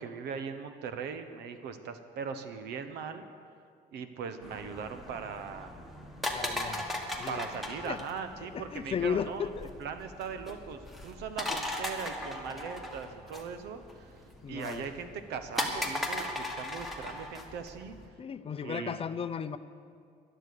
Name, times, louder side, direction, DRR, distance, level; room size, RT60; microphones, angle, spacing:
voice 1, 0.0-3.3 3.9-5.7 7.3-9.5 9.8-14.1 14.5-18.0 18.6-19.0, right 6 dB, 80° right, 9 dB, 1.1 m, -39 dB
sound 1, 4.4-18.1, left 1 dB, ahead, 1.8 m, -38 dB
voice 2, 6.3-6.9 7.2-7.5 7.8-8.0 8.4-9.7 11.5-11.6 14.4-14.9 18.2-19.6, left 7 dB, 35° left, 12 dB, 0.6 m, -35 dB
12.5 x 11.5 x 6.7 m, 2.2 s
cardioid pair, 110°, 17 cm